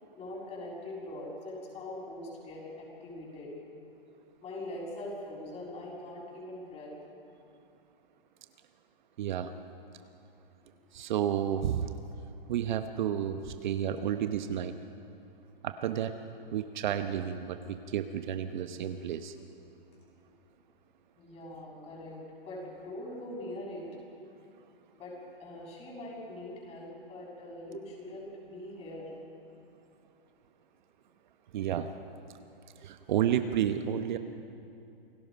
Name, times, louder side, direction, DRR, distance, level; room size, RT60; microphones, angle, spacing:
voice 1, 0.0-3.5 4.4-6.9 20.2-20.3 21.2-22.2 22.4-23.8 24.9-29.1, left 1 dB, 20° left, -2 dB, 6.8 m, -42 dB
voice 2, 9.2-9.5 10.9-11.9 12.5-14.8 15.6-16.2 16.5-19.3 27.7-27.8 31.5-31.9 32.8-34.2, right 10 dB, 50° right, 8 dB, 1.0 m, -31 dB
29.0 x 18.0 x 5.2 m, 2.7 s
hypercardioid pair, 140°, 30 cm